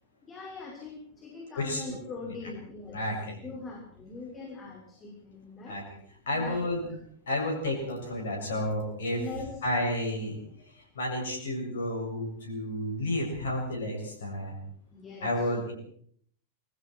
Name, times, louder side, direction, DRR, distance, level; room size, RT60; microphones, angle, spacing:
voice 1, 0.3-3.0 3.4-5.8 6.3-6.6 9.2-9.5 14.9-15.3, left 3 dB, 20° left, 0 dB, 5.9 m, -41 dB
voice 2, 1.5-2.0 2.3-2.4 2.9-3.4 5.7-5.8 6.3-6.9 7.3-9.2 9.6-10.4 10.7-14.6 15.2-15.7, left 1 dB, 65° left, 1 dB, 7.5 m, -31 dB
27.5 x 21.5 x 4.7 m, 0.63 s
figure-of-eight pair, 90°, 0 cm